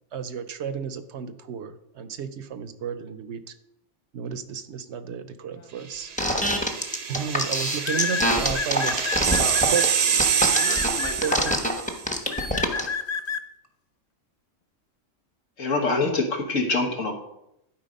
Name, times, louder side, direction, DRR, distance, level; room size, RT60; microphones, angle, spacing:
voice 1, 0.1-3.5 4.1-6.1 7.1-9.3 9.7-9.8 10.6-10.8 11.2-11.4, right 8 dB, 65° right, 11 dB, 0.9 m, -32 dB
sound 1, 6.1-12.0, right 7 dB, 45° right, 0.5 m, -26 dB
sound 2, 6.2-12.9, equal, 5° left, 0.9 m, -24 dB
sound 3, 6.6-6.7 7.8-9.8 10.5-11.6 12.3-13.4, left 6 dB, 65° left, 0.4 m, -30 dB
voice 2, 9.3-9.7 10.1-13.1, left 2 dB, 50° left, 2 dB, 1.6 m, -39 dB
voice 3, 15.6-17.2, left 3 dB, 90° left, 3 dB, 1.8 m, -24 dB
11.5 x 4.8 x 5.1 m, 0.83 s
omnidirectional pair, 1.3 m